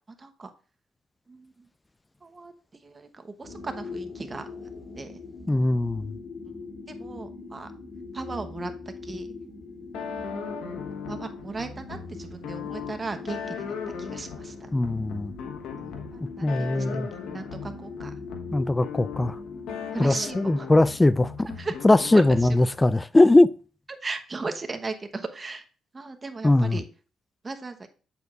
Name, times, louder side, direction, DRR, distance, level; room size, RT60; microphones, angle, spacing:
voice 1, 0.1-0.5 1.3-1.7 2.2-4.5 5.0-5.2 6.9-7.7 8.1-8.7 9.0-9.3 11.0-14.7 15.8-16.9 17.3-18.1 19.9-20.7 21.6-21.8 22.1-22.6 23.9-25.7 25.9-26.8 27.4-27.9, right 3 dB, 30° right, 1.0 m, -37 dB
sound 1, 3.4-21.6, left 4 dB, 65° left, 2.5 m, -42 dB
voice 2, 5.5-6.1 14.7-15.3 16.4-17.1 18.5-19.4 20.0-21.6 21.8-23.5 26.4-26.8, left 2 dB, 15° left, 0.3 m, -20 dB
sound 2, 9.9-22.8, left 6 dB, 90° left, 1.2 m, -38 dB
8.0 x 6.9 x 2.4 m
cardioid pair, 90°, 0 cm